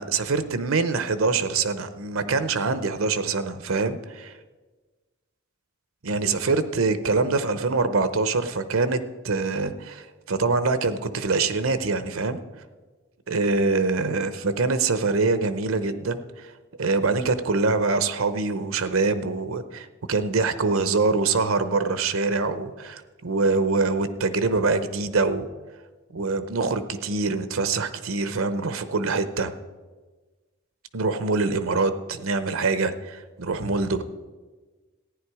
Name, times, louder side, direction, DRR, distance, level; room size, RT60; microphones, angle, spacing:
voice 1, 0.0-4.3 6.0-9.0 9.2-12.4 13.3-16.5 16.8-25.5 26.1-29.5 30.9-34.0, right 3 dB, 90° right, 11 dB, 0.8 m, -24 dB
14.5 x 9.9 x 4.8 m, 1.3 s
head